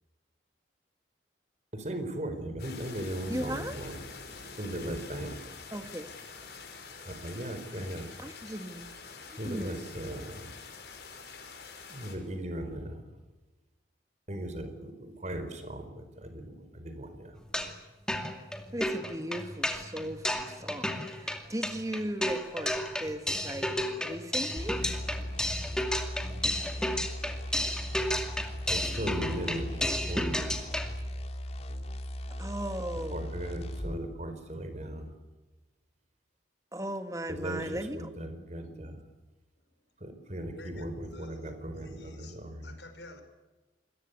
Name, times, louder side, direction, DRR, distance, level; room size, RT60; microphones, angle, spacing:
voice 1, 1.7-4.0 4.6-5.4 7.0-8.1 9.4-10.5 11.9-13.0 14.3-17.4 28.7-30.5 33.1-35.1 37.3-39.0 40.0-42.7, right 1 dB, 40° right, 8 dB, 4.6 m, -38 dB
sound 1, 2.6-12.2, left 4 dB, 55° left, 5.8 m, -46 dB
voice 2, 3.3-3.8 5.7-6.1 8.2-8.9 9.3-10.0 18.7-23.7 24.0-24.8 32.3-33.2 36.7-38.1 38.4-39.0, right 1 dB, 20° right, 8 dB, 1.9 m, -37 dB
sound 2, 17.4-17.8 18.1-30.9, left 1 dB, 5° left, 2.4 m, -33 dB
sound 3, 24.6-34.0, equal, 35° left, 2.5 m, -38 dB
voice 3, 40.5-43.2, left 2 dB, 75° left, 7 dB, 5.1 m, -51 dB
28.0 x 22.5 x 8.3 m, 1.1 s
head